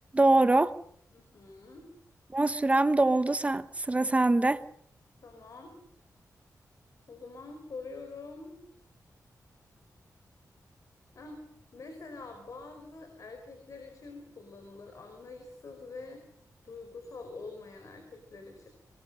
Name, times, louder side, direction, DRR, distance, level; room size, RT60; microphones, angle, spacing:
voice 1, 0.1-0.7 2.3-4.6, right 2 dB, 20° right, 13 dB, 1.0 m, -24 dB
voice 2, 1.1-1.9 5.2-5.7 7.1-8.6 11.2-11.4 11.7-16.3 16.6-18.7, left 3 dB, 60° left, 5 dB, 5.2 m, -45 dB
24.5 x 23.5 x 6.5 m, 0.62 s
wide cardioid pair, 130°, 6 cm